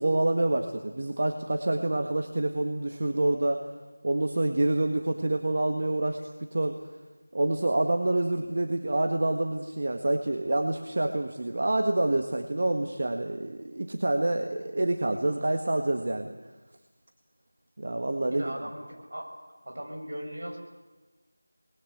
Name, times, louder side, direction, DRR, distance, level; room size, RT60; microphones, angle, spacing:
voice 1, 0.0-3.7 4.0-6.2 6.5-6.8 7.3-16.4 17.8-18.5, right 2 dB, 45° right, 5 dB, 1.7 m, -27 dB
voice 2, 18.3-19.3 19.6-20.6, equal, 70° right, 1 dB, 7.7 m, -38 dB
27.0 x 20.5 x 8.2 m, 1.2 s
figure-of-eight pair, 175°, 0 cm